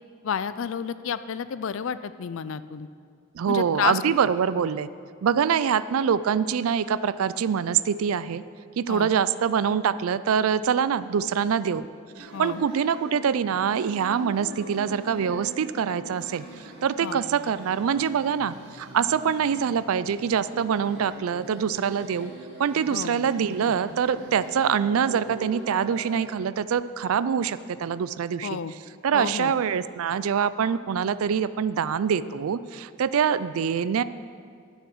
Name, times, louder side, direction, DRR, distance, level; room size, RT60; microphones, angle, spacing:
voice 1, 0.2-2.9 3.5-4.0 8.9-9.1 12.3-12.6 17.0-17.2 22.9-23.1 28.4-28.7 29.1-29.5, left 7 dB, 60° left, 14 dB, 0.4 m, -30 dB
voice 2, 3.3-4.9 5.2-8.4 8.8-11.9 12.2-22.3 22.6-28.6 29.0-34.0, right 7 dB, 80° right, 15 dB, 0.4 m, -25 dB
sound 1, 12.2-26.2, right 1 dB, 55° right, 1.9 m, -43 dB
11.5 x 7.2 x 6.2 m, 2.1 s
head